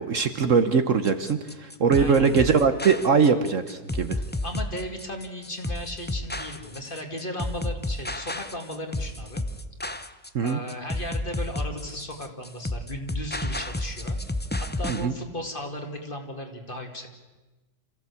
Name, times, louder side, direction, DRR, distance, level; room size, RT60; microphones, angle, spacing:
voice 1, 0.0-4.2 10.3-10.6 14.9-15.1, right 5 dB, 55° right, 9 dB, 1.3 m, -22 dB
sound 1, 1.0-15.1, left 1 dB, 15° left, 0.4 m, -31 dB
voice 2, 2.0-2.4 4.4-9.4 10.4-14.2 14.6-17.1, left 1 dB, 30° left, 4 dB, 2.4 m, -36 dB
27.0 x 15.0 x 8.4 m, 1.1 s
omnidirectional pair, 1.7 m